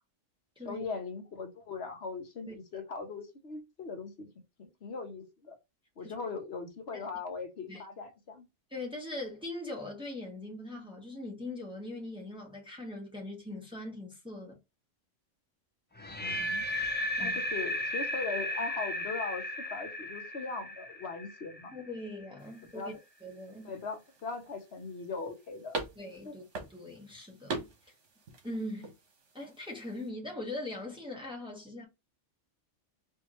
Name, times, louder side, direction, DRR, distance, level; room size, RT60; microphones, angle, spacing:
voice 1, 0.6-4.3 4.6-5.6 6.0-8.5 16.2-16.7 17.2-21.7 22.7-23.0 23.6-25.8 26.2-26.4, left 4 dB, 60° left, 1.2 m, -39 dB
voice 2, 8.7-14.6 17.2-17.4 21.7-22.9 23.2-23.7 26.0-27.7 28.4-28.9 29.3-31.8, left 1 dB, 5° right, 1.1 m, -41 dB
sound 1, 16.0-22.0, left 1 dB, 15° left, 0.4 m, -35 dB
sound 2, 22.4-30.1, right 3 dB, 75° right, 1.4 m, -44 dB
4.5 x 2.8 x 3.0 m
omnidirectional pair, 1.3 m